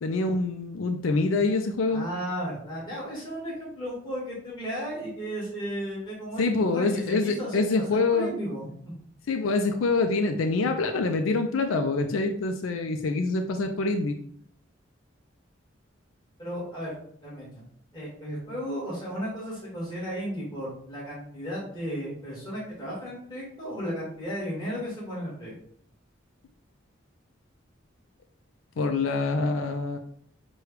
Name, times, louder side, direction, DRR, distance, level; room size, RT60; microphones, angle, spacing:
voice 1, 0.0-2.1 6.4-8.3 9.3-14.2 28.8-30.0, left 3 dB, 90° left, 6 dB, 0.4 m, -25 dB
voice 2, 1.9-8.7 16.4-16.9 17.2-17.6 17.9-25.5, equal, 25° left, -8 dB, 1.8 m, -34 dB
6.1 x 2.3 x 3.3 m, 0.63 s
head